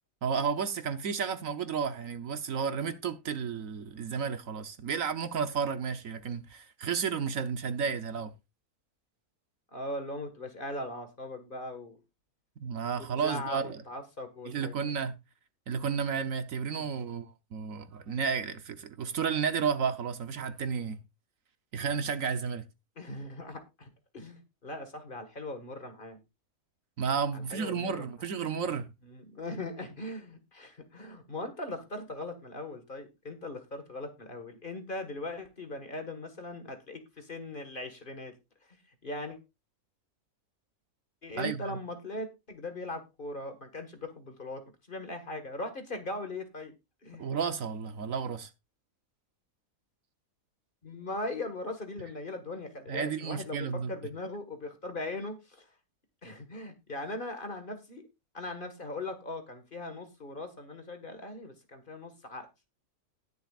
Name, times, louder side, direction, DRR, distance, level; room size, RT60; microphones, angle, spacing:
voice 1, 0.2-8.3 12.6-13.8 14.5-15.1 15.7-21.0 21.7-22.6 27.0-28.9 41.4-41.8 47.2-48.5 52.9-53.9, right 6 dB, 65° right, 1.2 m, -32 dB
voice 2, 9.7-12.0 13.0-14.7 16.8-17.1 23.0-26.2 27.3-28.1 28.6-28.8 29.0-38.3 39.0-39.4 41.2-44.6 44.9-46.7 47.0-47.4 50.8-55.7 56.2-58.0 58.3-62.7, left 2 dB, 35° left, 1.8 m, -40 dB
19.5 x 6.9 x 2.4 m
omnidirectional pair, 1.6 m